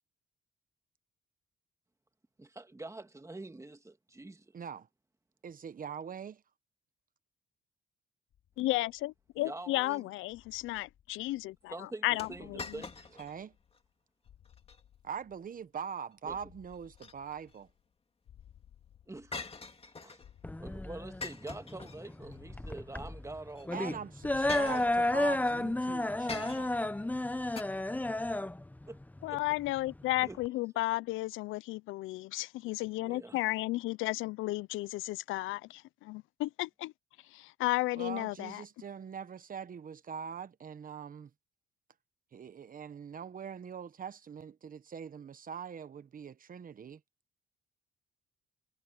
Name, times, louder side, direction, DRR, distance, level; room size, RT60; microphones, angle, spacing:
voice 1, 2.4-4.5 9.4-10.0 11.7-13.2 16.2-16.4 19.1-19.5 20.0-20.2 20.6-24.0 28.9-29.0 29.3-29.4 30.2-30.4 33.0-33.4, right 2 dB, 15° right, 2.1 m, -45 dB
voice 2, 4.5-4.9 5.4-6.4 13.2-13.5 15.0-17.7 23.7-26.7 37.9-41.3 42.3-47.0, right 7 dB, 45° right, 1.0 m, -42 dB
sound 1, 8.3-9.7 10.3-11.8 12.3-13.9 14.2-15.8 16.2-17.9 18.2-19.9 20.2-21.8 22.2-23.9 24.2-25.8, left 10 dB, 70° left, 2.9 m, -60 dB
voice 3, 8.6-12.6 29.2-36.9 37.3-38.6, left 18 dB, 90° left, 0.4 m, -33 dB
sound 2, 12.2-13.4 13.7-13.8 14.5-14.8 16.7-17.6 19.3-20.3 21.2-22.4 23.5-23.7 24.5-25.3 26.3-26.9 27.6-27.7, left 4 dB, 30° left, 2.7 m, -44 dB
sound 3, 20.4-30.5, left 1 dB, 10° left, 0.9 m, -32 dB
cardioid pair, 90°, 20 cm